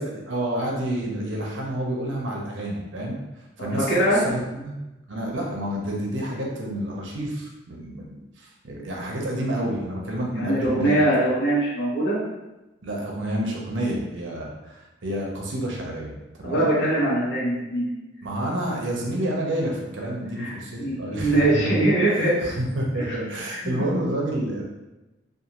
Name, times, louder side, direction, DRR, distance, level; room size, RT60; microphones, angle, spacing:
voice 1, 0.0-3.2 3.6-4.8 5.1-11.0 12.8-16.7 18.2-21.7 22.0-24.6, right 1 dB, 75° right, -1 dB, 0.6 m, -29 dB
voice 2, 3.9-4.2 10.3-12.2 16.4-17.9 20.4-22.5 23.1-23.2 23.6-23.7, right 1 dB, 65° left, -8 dB, 0.9 m, -22 dB
2.5 x 2.4 x 2.9 m, 1.0 s
head